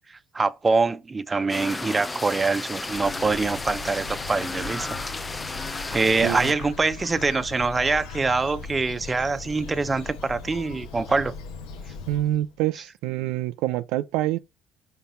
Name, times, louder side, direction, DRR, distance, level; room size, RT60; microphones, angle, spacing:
voice 1, 0.3-5.0 5.9-11.3, right 3 dB, 25° right, 0.7 m, -24 dB
sound 1, 1.5-6.5, left 3 dB, 20° left, 0.5 m, -33 dB
Bird, 2.7-12.6, left 4 dB, 90° left, 1.5 m, -39 dB
voice 2, 12.1-14.4, right 15 dB, 80° right, 0.5 m, -26 dB
5.8 x 4.0 x 5.5 m
supercardioid pair, 85°, 0 cm